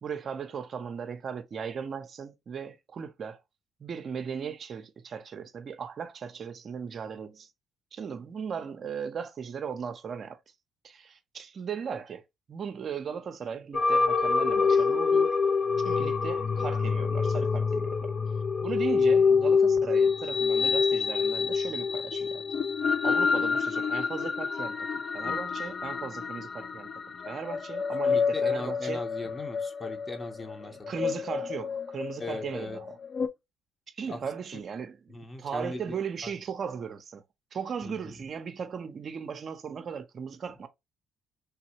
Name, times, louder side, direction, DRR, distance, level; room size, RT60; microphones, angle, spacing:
voice 1, 0.0-3.4 3.8-7.5 7.9-10.4 10.8-12.2 12.5-15.3 15.8-18.1 18.6-22.5 23.0-24.9 25.1-26.9 27.3-29.0 30.9-32.9 34.0-35.0 35.4-37.2 37.5-40.7, right 6 dB, 50° right, 0.5 m, -37 dB
sound 1, 13.7-33.3, left 5 dB, 45° left, 0.4 m, -27 dB
voice 2, 28.0-30.9 32.2-32.8 34.1-34.2 34.5-34.6 35.1-36.4 37.8-38.3, left 2 dB, 20° left, 0.8 m, -39 dB
3.4 x 2.3 x 2.8 m
supercardioid pair, 75°, 0 cm